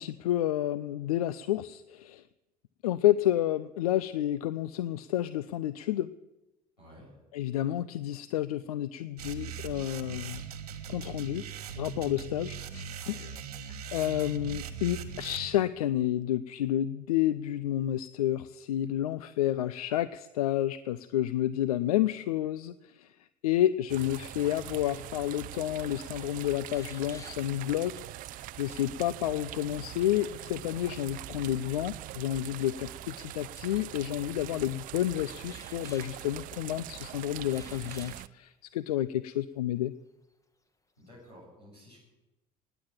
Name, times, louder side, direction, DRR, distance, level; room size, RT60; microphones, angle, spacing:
voice 1, 0.0-2.2 2.8-6.1 7.3-10.4 10.9-11.4 11.8-13.4 13.9-23.1 23.4-27.9 28.3-39.9, left 12 dB, 70° left, 17 dB, 0.5 m, -30 dB
voice 2, 6.8-7.2 41.0-42.0, equal, 90° left, -4 dB, 7.3 m, -52 dB
sound 1, 9.2-15.5, right 7 dB, 75° right, 1.1 m, -40 dB
sound 2, 23.9-38.3, right 15 dB, 45° right, 0.5 m, -43 dB
sound 3, 25.5-25.6 26.0-26.1 26.7-27.7 29.8-30.6 31.8-31.9 32.8-32.9 34.0-34.4 35.4-36.9 37.5-38.3 38.9-39.0 39.4-39.5 39.9-40.3 40.7-41.3, left 2 dB, 15° left, 1.3 m, -54 dB
19.0 x 9.0 x 7.5 m, 1.0 s
figure-of-eight pair, 60°, 20 cm